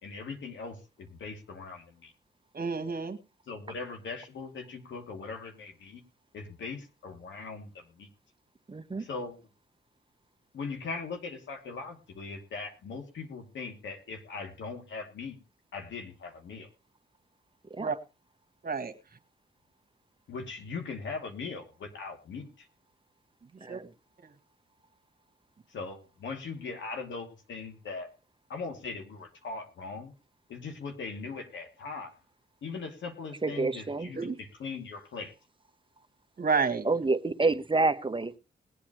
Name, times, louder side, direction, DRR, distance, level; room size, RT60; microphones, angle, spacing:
voice 1, 0.0-2.1 3.5-6.0 6.3-8.1 9.0-9.4 10.5-15.4 15.7-16.7 20.3-22.7 25.7-28.1 28.5-30.1 30.5-32.1 32.6-35.3, left 4 dB, 85° left, 4 dB, 2.7 m, -40 dB
voice 2, 2.5-3.2 17.8-18.0 18.6-18.9 23.7-23.8 34.1-34.4 36.4-36.9, right 5 dB, 55° right, 7 dB, 1.9 m, -29 dB
voice 3, 8.7-9.0 17.7-17.9 23.6-23.9 33.4-34.1 36.8-38.3, right 3 dB, 25° right, 10 dB, 1.1 m, -28 dB
20.5 x 8.5 x 3.1 m, 0.27 s
cardioid pair, 65°, 19 cm